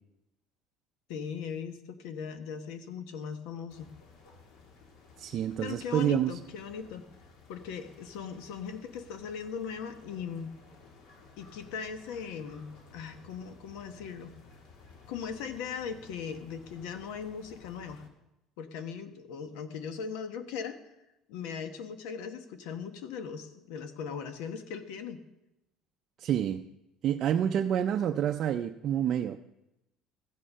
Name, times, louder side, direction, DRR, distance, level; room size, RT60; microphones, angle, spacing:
voice 1, 1.1-3.9 5.6-7.0 7.5-10.5 11.4-14.3 15.1-18.0 18.6-20.8 21.3-25.2, left 6 dB, 85° left, 9 dB, 1.2 m, -39 dB
sound 1, 3.7-18.1, left 4 dB, 65° left, 2.1 m, -55 dB
voice 2, 5.2-6.4 26.2-26.6 27.0-29.4, right 10 dB, 40° right, 5 dB, 0.4 m, -28 dB
14.5 x 8.6 x 5.5 m, 0.91 s
cardioid pair, 160°, 0 cm